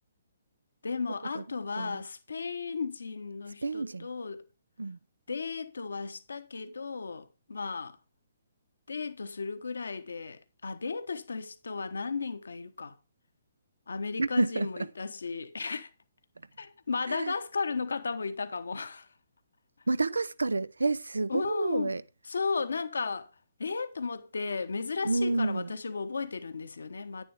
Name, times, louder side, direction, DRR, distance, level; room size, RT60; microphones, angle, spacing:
voice 1, 0.8-4.4 5.3-8.0 8.9-13.0 13.9-15.9 16.6-19.1 21.3-21.9 22.3-23.3 23.6-27.2, left 4 dB, 75° left, 1.1 m, -35 dB
voice 2, 3.6-4.1 4.8-5.0 14.2-14.9 17.1-17.3 19.9-22.0 25.0-25.7, right 3 dB, 85° right, 0.5 m, -29 dB
10.0 x 9.6 x 3.4 m
figure-of-eight pair, 130°, 0 cm